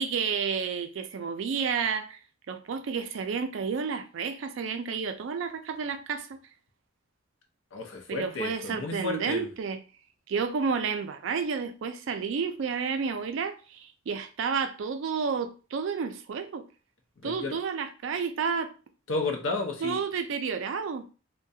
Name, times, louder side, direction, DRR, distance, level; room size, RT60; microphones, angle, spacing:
voice 1, 0.0-2.2 2.5-6.4 8.1-9.8 10.3-16.7 17.2-18.7 19.8-21.1, right 6 dB, 70° right, 0.4 m, -31 dB
voice 2, 7.7-9.5 17.2-17.6 19.1-20.0, left 3 dB, 70° left, 0.6 m, -32 dB
2.3 x 2.1 x 2.6 m
head